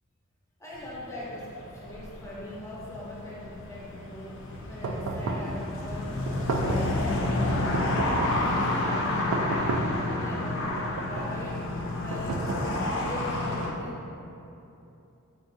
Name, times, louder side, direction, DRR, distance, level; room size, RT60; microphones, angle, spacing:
voice 1, 0.6-4.4 4.7-7.9 8.3-10.8 11.0-11.6 12.0-14.0, left 1 dB, 15° left, -7 dB, 0.6 m, -40 dB
sound 1, 0.7-13.7, left 2 dB, 60° left, 0.4 m, -30 dB
sound 2, 4.8-5.6 6.3-7.0 7.7-8.5 9.3-10.1 10.8-11.4 12.1-13.0, right 2 dB, 75° right, 0.3 m, -31 dB
3.9 x 2.6 x 2.5 m, 2.8 s
head